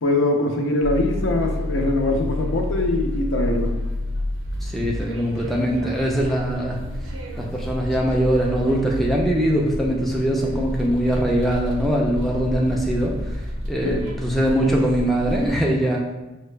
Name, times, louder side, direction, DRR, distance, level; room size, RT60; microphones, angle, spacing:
voice 1, 0.0-3.7 13.8-14.0, left 2 dB, 75° left, 2 dB, 0.6 m, -22 dB
sound 1, 0.8-15.6, left 1 dB, 80° right, 0.6 m, -29 dB
voice 2, 4.6-6.8 7.4-13.2 13.7-16.0, equal, ahead, -2 dB, 0.4 m, -22 dB
5.7 x 2.2 x 3.2 m, 1.0 s
head